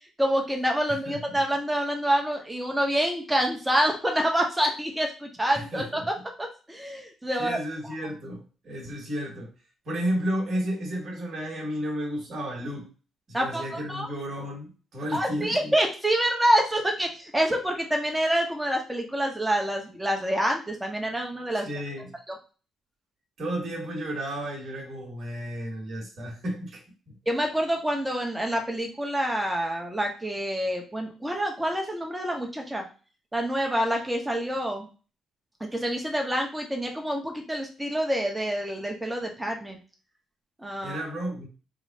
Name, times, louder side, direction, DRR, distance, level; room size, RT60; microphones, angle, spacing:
voice 1, 0.2-6.0 6.4-7.6 13.3-14.1 15.1-21.7 22.3-22.4 27.3-32.8 33.3-34.9 35.6-39.8 40.6-41.0, equal, 10° right, 2 dB, 1.0 m, -27 dB
voice 2, 0.9-1.4 5.5-6.1 7.4-9.5 9.9-12.9 13.3-15.7 21.5-22.1 23.4-27.2 40.8-41.4, equal, 50° right, -1 dB, 1.7 m, -33 dB
3.7 x 2.3 x 4.1 m, 0.35 s
cardioid pair, 90°, 0 cm